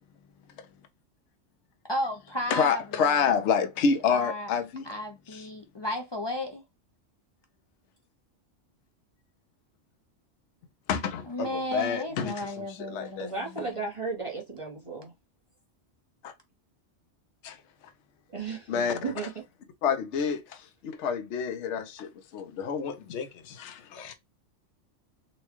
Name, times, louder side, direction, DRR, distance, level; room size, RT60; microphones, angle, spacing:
voice 1, 1.9-3.2 4.1-4.5 4.9-6.6 11.3-13.5, left 1 dB, 35° left, 0.4 m, -34 dB
voice 2, 2.5-4.9 5.3-5.5 10.9-13.3 16.2-16.3 17.4-17.9 18.7-19.1 19.8-24.1, left 6 dB, 70° left, 0.9 m, -29 dB
voice 3, 13.2-15.1 18.3-19.3, right 4 dB, 30° right, 0.9 m, -35 dB
4.1 x 2.3 x 2.9 m
omnidirectional pair, 1.3 m